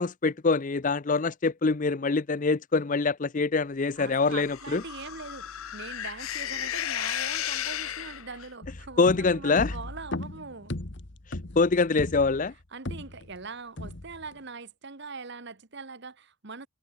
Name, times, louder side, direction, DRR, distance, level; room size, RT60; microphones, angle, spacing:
voice 1, 0.0-4.8 9.0-9.7 11.6-12.5, left 4 dB, 40° left, 0.5 m, -24 dB
voice 2, 4.0-10.7 12.7-16.7, right 4 dB, 55° right, 1.4 m, -42 dB
sound 1, 4.2-8.5, left 11 dB, 80° left, 0.7 m, -34 dB
sound 2, 8.6-13.4 13.8-14.3, left 1 dB, 55° left, 1.6 m, -37 dB
head